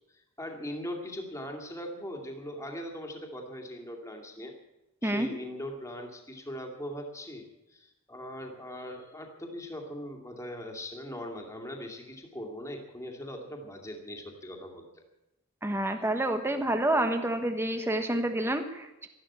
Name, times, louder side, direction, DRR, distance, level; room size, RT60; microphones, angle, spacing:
voice 1, 0.1-4.5 5.0-14.9 15.8-16.0, equal, 15° left, 3 dB, 2.4 m, -40 dB
voice 2, 15.6-19.1, right 1 dB, 10° right, 7 dB, 1.2 m, -28 dB
13.0 x 12.5 x 8.7 m, 0.94 s
head